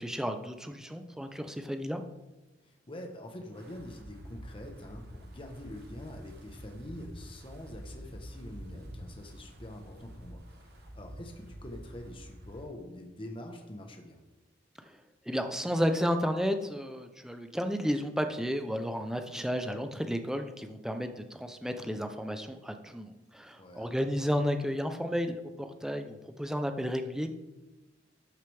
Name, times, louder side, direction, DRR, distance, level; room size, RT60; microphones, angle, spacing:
voice 1, 0.0-2.0 14.8-15.0 15.3-27.3, equal, 5° right, 6 dB, 0.6 m, -32 dB
voice 2, 2.6-14.2 23.6-24.2, left 1 dB, 30° left, 3 dB, 1.0 m, -45 dB
Wind, 3.5-12.7, equal, 55° right, 1.2 m, -47 dB
12.5 x 6.6 x 3.4 m, 1.1 s
head